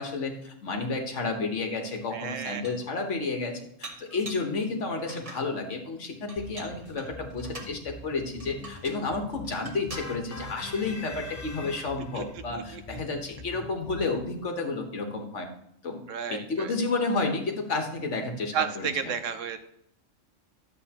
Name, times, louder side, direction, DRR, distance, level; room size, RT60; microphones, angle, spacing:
voice 1, 0.0-15.5 15.8-19.1, left 3 dB, 70° left, 4 dB, 1.6 m, -31 dB
Dishes pots and pans, 1.7-1.8 2.3-2.9 3.8-4.5 5.0-5.5 6.3-7.8 8.4-9.1 9.4-10.1, right 2 dB, 30° right, 1.3 m, -44 dB
voice 2, 2.1-2.6 12.1-12.2 12.5-12.8 16.1-16.7 18.5-19.6, right 7 dB, 80° right, 9 dB, 1.1 m, -32 dB
sound 1, 6.4-14.4, left 3 dB, 30° left, 0.6 m, -45 dB
sound 2, 9.9-12.3, left 2 dB, 15° left, 1.0 m, -42 dB
11.5 x 7.7 x 2.9 m, 0.72 s
omnidirectional pair, 1.3 m